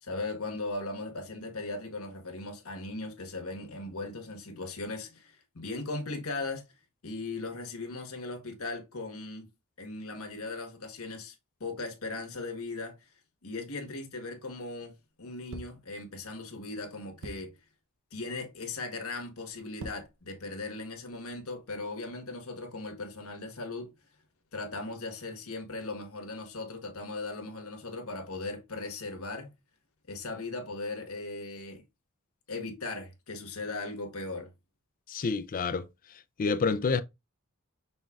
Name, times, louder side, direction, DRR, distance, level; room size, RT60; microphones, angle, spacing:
voice 1, 0.0-6.6 7.0-9.5 9.8-11.3 11.6-13.0 13.4-17.6 18.1-23.9 24.5-29.5 30.1-31.8 32.5-34.5, left 3 dB, 80° left, 1.3 m, -38 dB
sound 1, 15.5-15.9 17.2-17.6 18.4-18.7 19.5-20.2 20.9-21.7, right 1 dB, 70° right, 0.7 m, -45 dB
voice 2, 35.1-35.9 36.4-37.0, left 4 dB, 40° left, 0.4 m, -28 dB
5.6 x 3.8 x 2.4 m
head